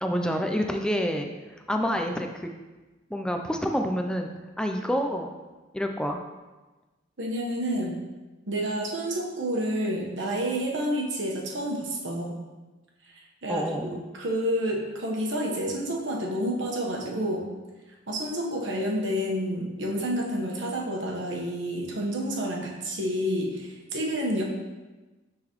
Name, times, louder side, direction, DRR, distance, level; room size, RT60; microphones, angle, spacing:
voice 1, 0.0-2.5 3.1-4.3 4.6-5.3 5.7-6.2 13.5-13.9, equal, 5° left, 4 dB, 0.4 m, -28 dB
voice 2, 7.2-8.0 8.5-12.4 13.1-17.4 18.1-24.4, equal, 65° right, -1 dB, 1.1 m, -29 dB
9.6 x 3.9 x 3.0 m, 1.2 s
head